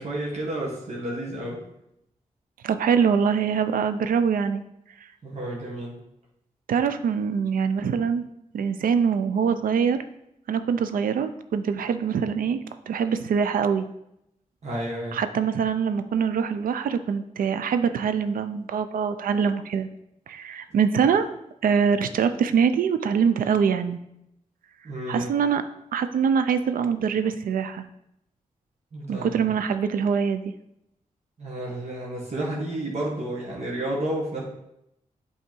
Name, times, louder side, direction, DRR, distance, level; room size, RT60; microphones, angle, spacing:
voice 1, 0.0-1.6 5.2-6.0 14.6-15.2 24.8-25.3 28.9-29.4 31.4-34.4, right 1 dB, 50° right, -4 dB, 1.7 m, -31 dB
voice 2, 2.6-4.6 6.7-8.3 8.5-10.0 10.5-13.8 15.1-19.9 20.3-21.3 21.6-24.0 25.1-25.6 25.9-27.8 29.1-30.5, right 6 dB, 90° right, 10 dB, 0.5 m, -24 dB
8.3 x 3.5 x 4.5 m, 0.80 s
cardioid pair, 65°, 14 cm